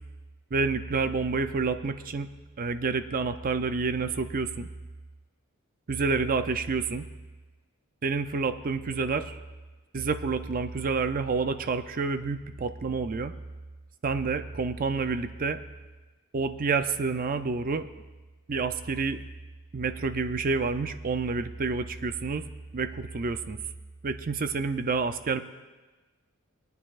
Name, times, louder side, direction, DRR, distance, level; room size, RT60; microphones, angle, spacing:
voice 1, 0.5-2.3 2.6-4.7 5.9-7.0 8.0-9.4 9.9-13.3 14.0-15.6 16.3-17.9 18.5-19.2 19.7-22.4 22.7-23.6 24.0-25.4, right 4 dB, 40° right, 10 dB, 0.5 m, -28 dB
21.0 x 9.4 x 2.5 m, 1.2 s
head